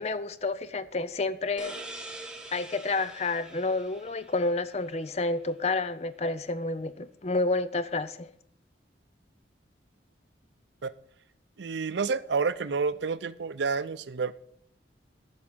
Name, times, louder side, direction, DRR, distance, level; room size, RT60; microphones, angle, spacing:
voice 1, 0.0-1.8 2.5-8.3, left 3 dB, 35° left, 0.5 m, -30 dB
sound 1, 1.6-5.0, right 2 dB, 5° right, 1.0 m, -44 dB
voice 2, 11.6-14.3, right 5 dB, 75° right, 0.5 m, -29 dB
9.5 x 6.3 x 7.2 m
head